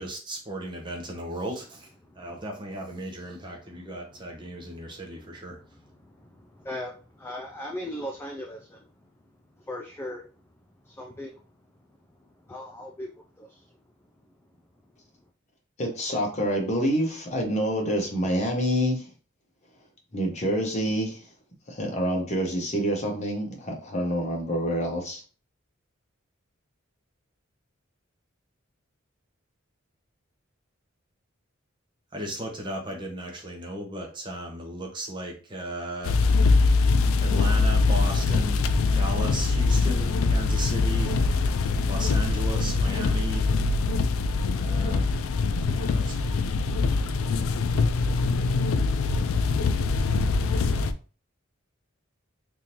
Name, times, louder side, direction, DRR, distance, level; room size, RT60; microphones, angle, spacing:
voice 1, 0.0-1.9 2.2-5.6 32.1-36.2 37.2-41.1 41.9-43.5 44.6-45.1 45.7-46.3, right 1 dB, 25° right, 0.8 m, -35 dB
voice 2, 3.6-5.0 5.3-8.9 9.6-10.4 10.8-11.4 12.2-13.8, left 1 dB, 10° left, 0.3 m, -40 dB
voice 3, 15.8-19.0 20.1-21.2 21.7-25.2, equal, 35° left, 1.0 m, -27 dB
sound 1, 36.0-50.9, left 3 dB, 85° left, 0.4 m, -23 dB
3.6 x 2.6 x 2.9 m
head